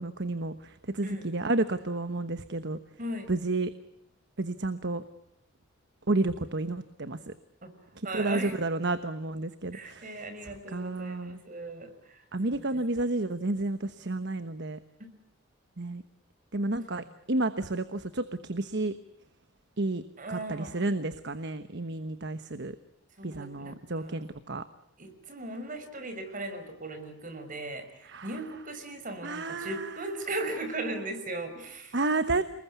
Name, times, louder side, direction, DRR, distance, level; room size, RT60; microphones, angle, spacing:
voice 1, 0.0-2.8 3.3-3.7 4.4-5.0 6.1-7.3 8.1-10.1 10.7-11.4 12.3-14.8 15.8-16.0 16.5-18.9 19.8-20.0 20.3-22.8 23.2-24.6 28.0-28.3 29.2-29.9 31.9-32.4, right 2 dB, 55° right, 11 dB, 1.1 m, -31 dB
voice 2, 3.0-3.3 7.6-7.7 8.0-8.6 9.7-12.8 15.0-15.1 20.2-20.8 23.2-24.2 25.0-32.0 32.3-32.4, right 2 dB, 40° right, 8 dB, 5.3 m, -38 dB
29.0 x 21.0 x 8.3 m, 0.80 s
head